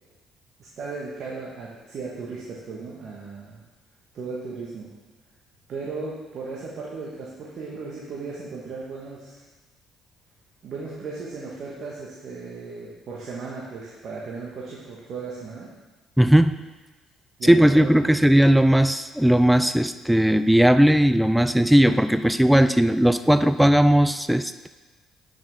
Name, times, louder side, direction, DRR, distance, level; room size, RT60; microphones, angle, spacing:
voice 1, 0.8-3.6 4.1-4.9 5.7-9.4 10.6-15.7 17.4-18.0, right 4 dB, 60° right, -4 dB, 1.5 m, -36 dB
voice 2, 16.2-16.6 17.4-24.7, equal, 5° right, 11 dB, 0.3 m, -18 dB
8.7 x 5.9 x 3.7 m, 1.2 s
supercardioid pair, 65°, 0 cm